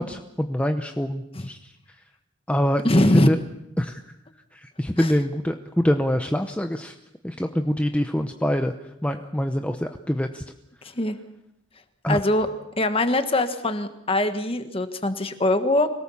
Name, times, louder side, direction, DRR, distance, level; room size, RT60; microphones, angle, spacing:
voice 1, 0.0-1.7 2.5-3.4 3.8-4.0 4.5-7.0 7.2-10.4 12.0-12.2, equal, 5° left, 6 dB, 0.8 m, -25 dB
voice 2, 2.8-3.3 5.0-5.1 10.9-11.2 12.1-12.5 12.8-15.9, left 1 dB, 30° left, 9 dB, 1.5 m, -22 dB
25.0 x 18.5 x 7.2 m, 0.85 s
head